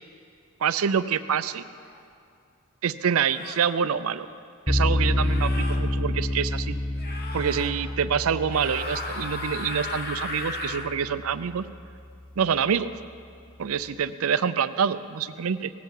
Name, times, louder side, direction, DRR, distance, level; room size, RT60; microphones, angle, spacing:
voice 1, 0.6-1.6 2.8-4.3 4.7-6.8 7.3-11.6 12.4-12.9 13.6-15.7, right 7 dB, 70° right, 14 dB, 0.5 m, -26 dB
sound 1, 1.8-2.0 3.2-3.7 5.1-5.8 7.0-7.7 8.5-10.9, left 2 dB, 50° left, 1.2 m, -35 dB
sound 2, 4.7-11.8, left 1 dB, 5° left, 0.5 m, -28 dB
18.0 x 7.6 x 7.2 m, 2.4 s
head